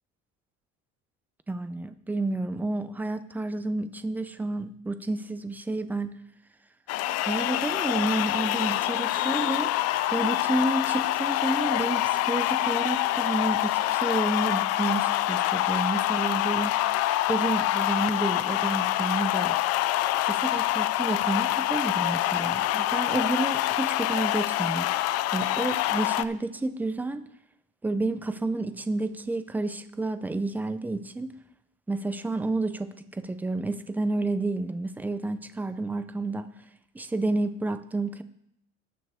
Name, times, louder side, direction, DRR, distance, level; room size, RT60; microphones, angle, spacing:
voice 1, 1.5-6.1 7.2-9.7 10.1-16.8 17.3-19.6 20.3-24.9 25.3-27.3 27.8-31.3 31.9-36.5 36.9-38.2, right 2 dB, 5° right, 10 dB, 0.4 m, -30 dB
sound 1, 6.9-26.2, left 15 dB, 50° left, 0.4 m, -26 dB
19.0 x 6.8 x 3.5 m, 0.77 s
cardioid pair, 155°, 32 cm